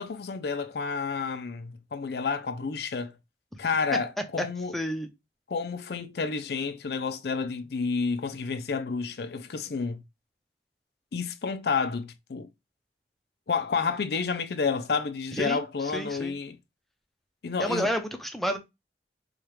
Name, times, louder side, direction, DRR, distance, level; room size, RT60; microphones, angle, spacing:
voice 1, 0.0-3.1 3.6-4.8 5.5-10.0 11.1-12.5 13.5-16.6 17.4-17.9, left 5 dB, 60° left, 0.5 m, -30 dB
voice 2, 4.7-5.1 15.3-15.6 15.9-16.4 17.6-18.6, equal, ahead, 0.5 m, -29 dB
4.7 x 2.4 x 3.0 m
head